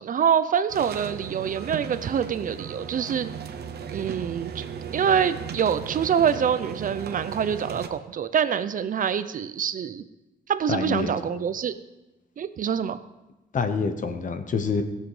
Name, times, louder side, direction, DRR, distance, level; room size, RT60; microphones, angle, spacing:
voice 1, 0.0-3.3 3.9-4.6 4.9-10.0 10.5-11.7 12.4-13.0, right 8 dB, 50° right, 12 dB, 0.6 m, -25 dB
sound 1, 0.7-7.9, right 7 dB, 70° right, 0.9 m, -36 dB
voice 2, 10.7-11.1 13.5-14.8, left 5 dB, 50° left, 9 dB, 1.0 m, -26 dB
17.0 x 7.4 x 4.9 m, 1.0 s
wide cardioid pair, 155°, 18 cm